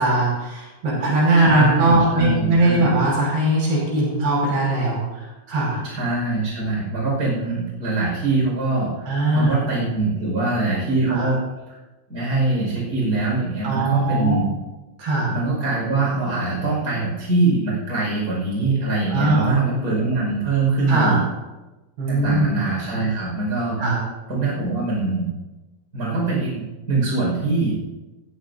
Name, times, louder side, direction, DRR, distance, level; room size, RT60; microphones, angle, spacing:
voice 1, 0.0-5.8 9.1-9.6 11.1-11.3 13.6-14.4 15.0-15.3 19.1-19.5 20.9-21.2 22.0-22.6 23.8-24.0, right 2 dB, 75° right, -4 dB, 7.8 m, -20 dB
voice 2, 1.4-2.9 5.8-9.1 9.3-11.4 12.1-14.5 15.3-21.2 22.1-23.8 24.3-25.3 25.9-27.8, right 3 dB, 20° right, -4 dB, 5.7 m, -23 dB
21.0 x 14.5 x 2.7 m, 1.1 s
omnidirectional pair, 4.8 m